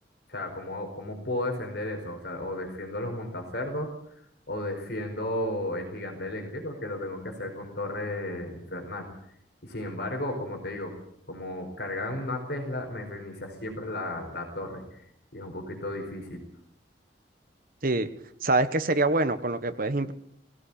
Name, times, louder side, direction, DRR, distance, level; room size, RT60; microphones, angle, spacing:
voice 1, 0.3-3.9 4.5-9.1 9.6-10.9 11.3-15.0 15.3-16.4, left 1 dB, 60° left, 3 dB, 4.8 m, -34 dB
voice 2, 18.4-20.1, right 2 dB, 50° right, 11 dB, 1.4 m, -25 dB
20.5 x 16.5 x 8.8 m, 0.71 s
head